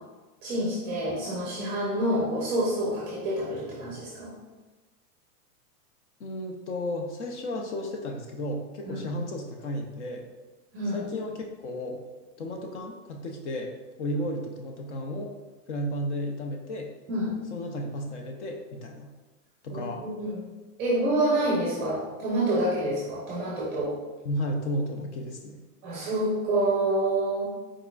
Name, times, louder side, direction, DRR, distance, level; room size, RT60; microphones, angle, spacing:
voice 1, 0.4-4.3 8.9-9.1 10.7-11.0 17.1-17.3 19.7-20.4 20.8-23.9 25.8-27.5, right 1 dB, 15° right, -6 dB, 0.6 m, -27 dB
voice 2, 6.2-10.3 10.9-12.0 12.4-13.7 14.0-15.3 15.7-16.9 17.5-19.1 19.6-20.0 24.2-25.6, equal, 50° left, 2 dB, 0.6 m, -33 dB
4.6 x 4.2 x 2.3 m, 1.2 s
supercardioid pair, 175°, 46 cm